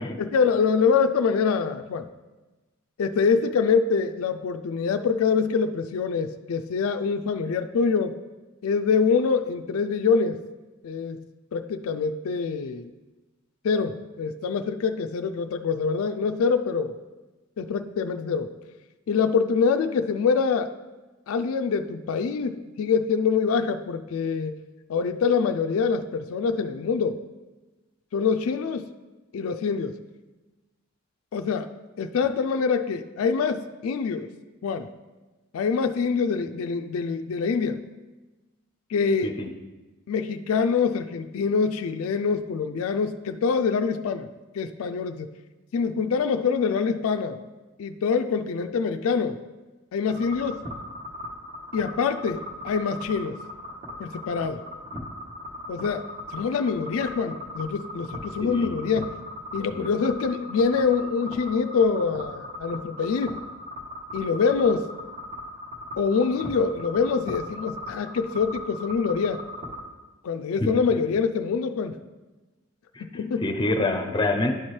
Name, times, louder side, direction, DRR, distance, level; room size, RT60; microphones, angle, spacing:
voice 1, 0.2-2.1 3.0-8.1 8.6-10.4 10.8-11.2 11.5-12.9 13.6-17.0 17.6-18.5 19.1-20.7 21.3-24.5 24.9-27.2 28.1-28.9 29.3-30.0 31.3-31.7 32.0-34.3 34.6-34.9 35.5-37.8 38.9-39.4 40.1-44.3 44.5-45.3 45.7-47.4 47.8-49.4 49.9-50.6 51.7-53.4 54.0-54.6 55.7-59.2 59.5-63.4 64.1-64.9 66.0-69.4 70.2-72.0 73.0-73.5, left 5 dB, 75° left, 7 dB, 0.3 m, -25 dB
sound 1, 50.1-69.8, left 1 dB, 30° right, 1.3 m, -39 dB
voice 2, 58.4-58.7 70.6-70.7 72.9-73.0 73.4-74.5, left 2 dB, 20° left, 4 dB, 0.6 m, -26 dB
11.5 x 4.3 x 3.2 m, 1.2 s
head